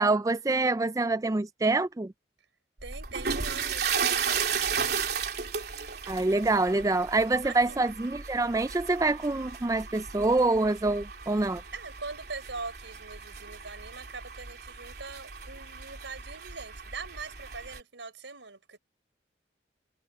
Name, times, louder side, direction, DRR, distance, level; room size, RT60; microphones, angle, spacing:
voice 1, 0.0-2.1 6.1-11.6, right 2 dB, 20° right, 0.4 m, -26 dB
sound 1, 2.8-17.8, right 6 dB, 60° right, 3.5 m, -35 dB
voice 2, 2.8-4.5 7.4-7.8 11.7-18.8, right 4 dB, 90° right, 4.7 m, -42 dB
head